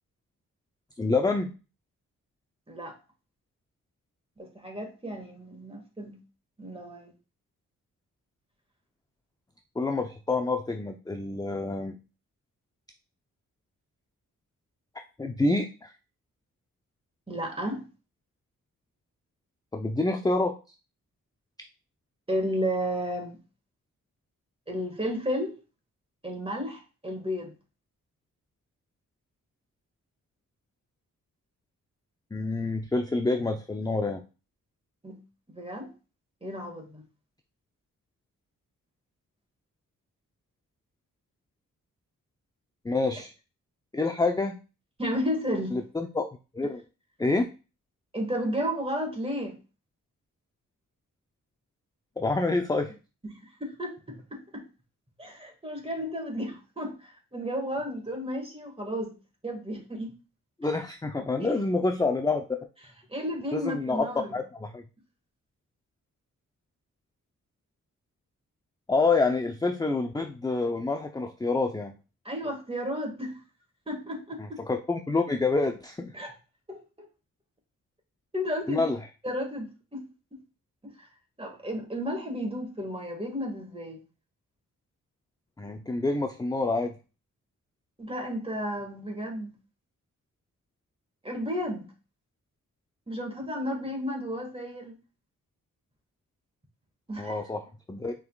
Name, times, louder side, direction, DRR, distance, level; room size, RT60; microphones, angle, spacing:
voice 1, 1.0-1.5 9.8-11.9 15.0-15.9 19.7-20.6 32.3-34.2 42.8-43.3 43.9-44.6 45.7-46.2 46.5-46.8 47.2-47.5 52.2-52.9 60.6-62.4 63.5-64.1 64.3-64.8 68.9-71.9 74.4-76.1 78.7-79.0 85.6-86.9 97.2-98.1, left 3 dB, 10° left, 0.5 m, -27 dB
voice 2, 4.4-6.2 6.6-7.1 17.3-17.9 22.3-23.4 24.7-25.6 26.2-27.5 35.0-35.2 35.5-35.9 36.4-37.0 45.0-45.8 48.1-49.6 53.2-54.7 55.2-59.1 59.4-60.1 61.4-61.5 63.1-64.4 72.3-73.4 73.9-74.6 76.1-76.3 76.7-77.1 78.3-78.9 79.2-80.1 80.8-81.1 81.4-84.0 88.0-89.5 91.2-91.9 93.1-94.9 97.1-97.4, equal, 15° right, 1.8 m, -33 dB
5.5 x 3.9 x 2.3 m
cardioid pair, 50°, 34 cm